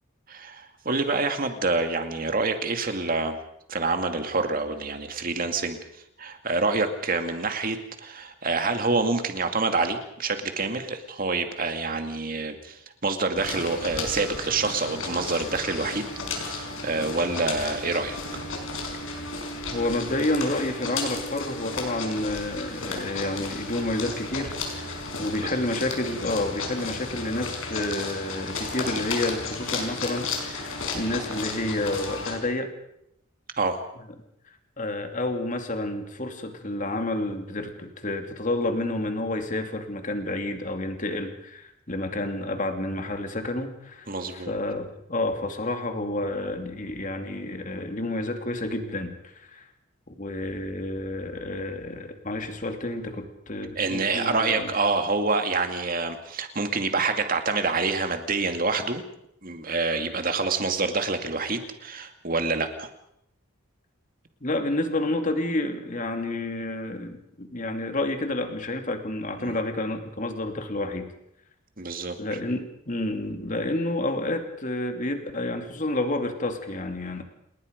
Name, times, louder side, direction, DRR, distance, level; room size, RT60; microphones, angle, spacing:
voice 1, 0.3-3.4 3.7-5.8 6.2-16.1 16.4-18.5 25.4-25.5 33.6-33.8 44.1-44.5 53.8-59.0 59.4-62.9 69.4-69.6 71.8-72.2, right 3 dB, 45° right, 6 dB, 2.3 m, -27 dB
sound 1, 13.3-32.4, left 3 dB, 75° left, 5.1 m, -33 dB
voice 2, 19.7-32.7 34.8-49.7 50.1-54.7 64.4-71.1 72.2-77.2, left 2 dB, 40° left, 6 dB, 2.6 m, -30 dB
28.5 x 20.0 x 5.3 m, 0.78 s
head